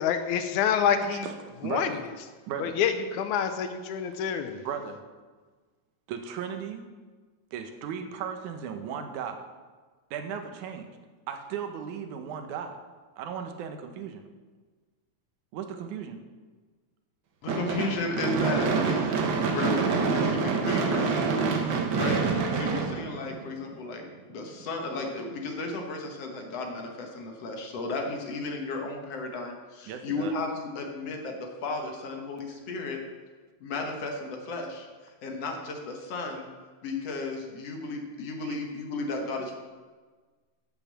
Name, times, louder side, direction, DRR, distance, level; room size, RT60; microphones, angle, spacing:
voice 1, 0.0-1.3 1.7-1.9 2.6-4.6, left 8 dB, 85° left, 9 dB, 2.2 m, -27 dB
voice 2, 1.6-2.0 2.5-2.8 4.6-5.0 6.1-6.8 7.5-9.4 10.1-10.9 11.3-12.8 13.2-14.2 15.5-16.2 29.9-30.4 38.4-38.6, right 7 dB, 85° right, 6 dB, 2.4 m, -36 dB
voice 3, 17.4-21.3 21.7-22.2 22.5-24.0 24.3-33.0 33.6-34.9 35.2-36.5 36.8-39.6, left 3 dB, 60° left, 2 dB, 2.2 m, -34 dB
Gunshot gunfire / Fireworks, 17.5-23.7, right 5 dB, 60° right, 1.3 m, -26 dB
10.5 x 5.8 x 7.5 m, 1.4 s
omnidirectional pair, 3.4 m